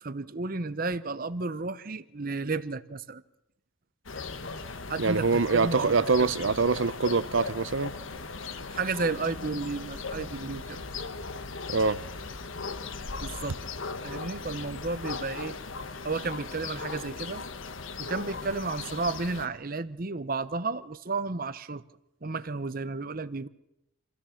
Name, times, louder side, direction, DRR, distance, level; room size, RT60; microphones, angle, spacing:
voice 1, 0.0-3.2 4.9-6.3 8.7-10.8 13.2-13.6 14.0-15.6 16.0-17.4 18.0-21.8 22.2-23.5, right 3 dB, 45° right, 0.8 m, -32 dB
sound 1, 4.1-19.5, left 4 dB, 85° left, 1.2 m, -38 dB
voice 2, 5.0-7.9 11.7-12.0, right 4 dB, 75° right, 0.7 m, -24 dB
26.5 x 15.5 x 7.1 m
head